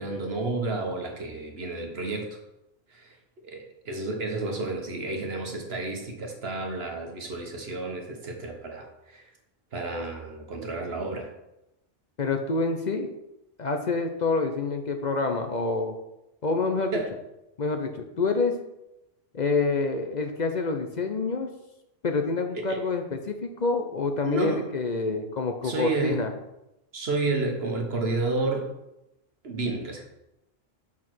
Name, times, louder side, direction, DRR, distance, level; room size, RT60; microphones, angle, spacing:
voice 1, 0.0-2.4 2.9-3.1 3.4-9.2 9.7-11.3 16.9-17.1 22.7-22.8 24.2-24.7 25.6-26.3 26.9-28.7 29.4-30.0, right 2 dB, 55° right, 2 dB, 1.4 m, -31 dB
voice 2, 12.2-13.1 13.6-15.9 16.4-17.0 17.6-18.5 19.3-21.5 22.0-26.3, left 3 dB, 45° left, 5 dB, 0.7 m, -27 dB
5.9 x 4.8 x 6.0 m, 0.90 s
omnidirectional pair, 1.3 m